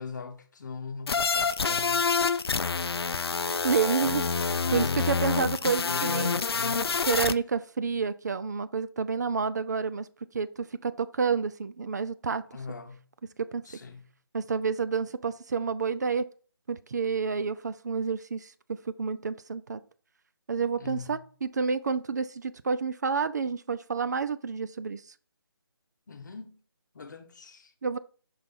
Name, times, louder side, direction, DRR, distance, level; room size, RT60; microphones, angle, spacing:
voice 1, 0.0-2.1 4.0-4.2 4.6-7.1 12.5-13.0 13.6-14.1 20.8-21.3 26.1-26.6 26.9-27.7, left 4 dB, 50° left, 0.9 m, -40 dB
sound 1, 1.1-7.3, left 5 dB, 75° left, 0.4 m, -27 dB
voice 2, 3.6-6.3 7.1-10.1 10.3-12.4 13.4-13.6 14.3-16.3 16.7-19.8 20.5-25.0 27.8-28.0, right 5 dB, 45° right, 0.4 m, -29 dB
5.5 x 3.3 x 5.6 m
figure-of-eight pair, 155°, 13 cm